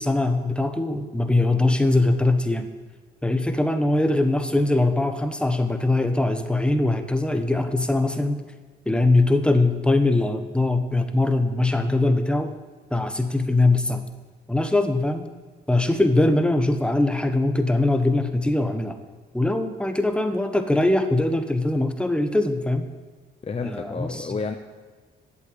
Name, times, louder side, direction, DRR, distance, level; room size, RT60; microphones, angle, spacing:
voice 1, 0.0-2.7 3.2-8.4 8.8-12.6 12.9-14.1 14.5-15.3 15.7-19.0 19.3-22.9 23.6-24.3, left 2 dB, 5° left, 7 dB, 1.2 m, -22 dB
voice 2, 23.4-24.6, left 4 dB, 30° left, 6 dB, 0.8 m, -30 dB
11.5 x 8.2 x 8.0 m, 1.4 s
cardioid pair, 90°, 20 cm